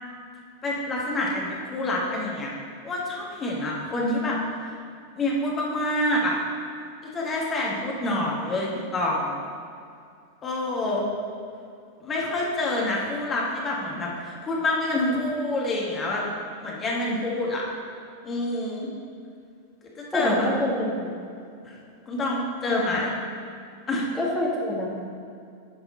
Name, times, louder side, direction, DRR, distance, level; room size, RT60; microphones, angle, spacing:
voice 1, 0.6-2.5 2.8-4.4 5.2-6.4 7.1-9.4 10.4-11.1 12.0-16.3 16.6-17.6 18.2-18.9 20.0-20.5 21.6-21.7 22.1-23.1 23.9-24.1, left 1 dB, 25° left, -3 dB, 1.7 m, -27 dB
voice 2, 20.1-21.1 22.7-22.8 24.2-24.9, left 1 dB, 5° left, -6 dB, 2.0 m, -26 dB
9.8 x 4.9 x 4.2 m, 2.4 s
figure-of-eight pair, 90°, 0 cm